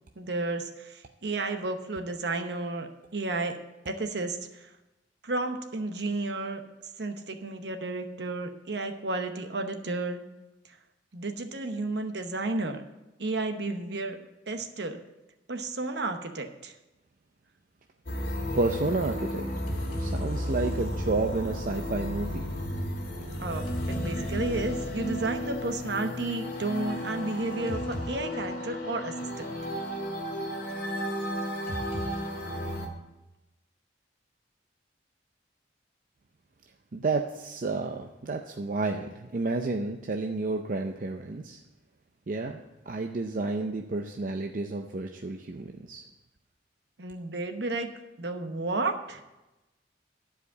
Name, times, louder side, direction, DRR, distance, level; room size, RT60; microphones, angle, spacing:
voice 1, 0.2-3.6 3.8-4.7 5.2-6.6 7.0-10.2 11.1-12.9 13.2-14.2 14.5-15.0 15.5-16.7 23.4-29.5 47.0-47.9 48.2-49.2, right 2 dB, 65° right, 6 dB, 1.0 m, -32 dB
sound 1, 18.1-32.9, equal, 55° left, 1.9 m, -33 dB
voice 2, 18.5-19.4 20.0-22.5 36.9-41.6 42.3-46.0, right 3 dB, 45° right, 4 dB, 0.5 m, -31 dB
11.0 x 5.0 x 8.0 m, 1.0 s
head